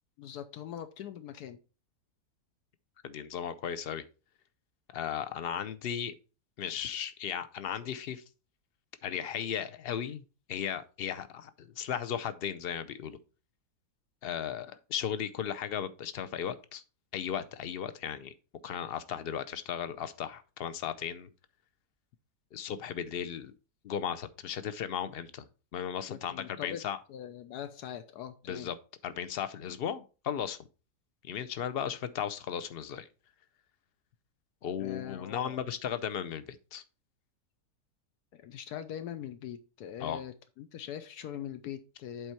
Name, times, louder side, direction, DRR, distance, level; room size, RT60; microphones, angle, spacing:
voice 1, 0.2-1.6 26.1-26.8 27.1-28.7 34.8-35.6 38.3-42.3, left 9 dB, 80° left, 1.2 m, -42 dB
voice 2, 3.0-4.0 4.9-6.1 6.6-8.2 9.0-10.2 10.5-13.2 14.2-16.8 17.1-18.3 18.6-21.3 22.5-23.5 23.8-25.5 25.7-27.0 28.5-28.7 29.0-30.6 31.2-33.1 34.6-36.8 40.0-40.2, left 8 dB, 60° left, 0.6 m, -36 dB
8.0 x 4.3 x 4.4 m
omnidirectional pair, 1.7 m